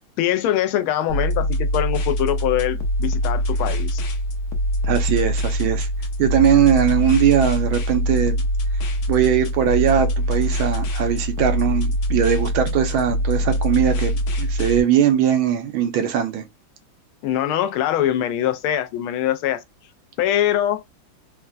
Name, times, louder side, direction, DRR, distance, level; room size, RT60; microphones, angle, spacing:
voice 1, 0.2-4.0 17.2-19.6 20.2-20.8, left 11 dB, 85° left, 1.4 m, -23 dB
sound 1, 1.1-14.8, equal, 65° left, 1.3 m, -23 dB
voice 2, 4.9-5.9 6.2-8.4 9.1-16.4, right 9 dB, 85° right, 1.6 m, -20 dB
4.2 x 2.2 x 2.4 m
omnidirectional pair, 2.2 m